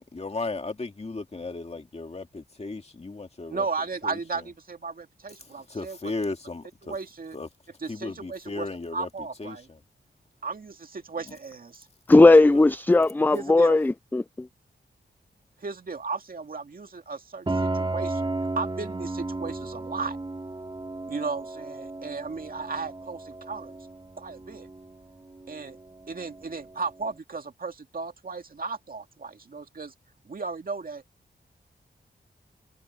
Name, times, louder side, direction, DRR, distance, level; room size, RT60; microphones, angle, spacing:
voice 1, 0.0-3.7 4.0-4.2 5.4-7.0 7.3-7.5 7.9-9.1 9.4-9.8 12.1-12.6 13.0-13.1, left 3 dB, 35° left, 2.3 m, -35 dB
voice 2, 3.5-6.1 6.8-7.4 7.8-9.7 10.4-11.9 13.3-13.8 15.6-20.2 21.1-23.8 24.2-24.7 25.5-25.8 26.1-29.9 30.2-31.0, right 4 dB, 50° right, 2.1 m, -35 dB
voice 3, 12.1-14.5, left 2 dB, 10° left, 0.3 m, -17 dB
Piano, 17.5-27.0, right 2 dB, 25° right, 2.7 m, -34 dB
wide cardioid pair, 95°, 19 cm